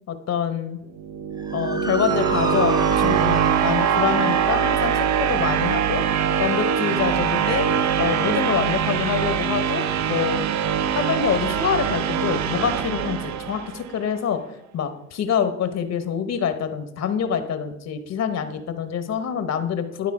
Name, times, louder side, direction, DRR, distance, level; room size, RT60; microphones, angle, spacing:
voice 1, 0.1-0.8 1.5-7.7 8.0-9.8 10.1-10.4 10.9-14.4 14.7-20.1, left 7 dB, 60° left, 9 dB, 0.9 m, -26 dB
sound 1, 0.9-14.0, right 8 dB, 65° right, 0.6 m, -23 dB
Motor vehicle (road) / Siren, 1.4-10.0, right 2 dB, 15° right, 0.5 m, -35 dB
11.5 x 4.0 x 4.8 m, 0.84 s
cardioid pair, 90°, 30 cm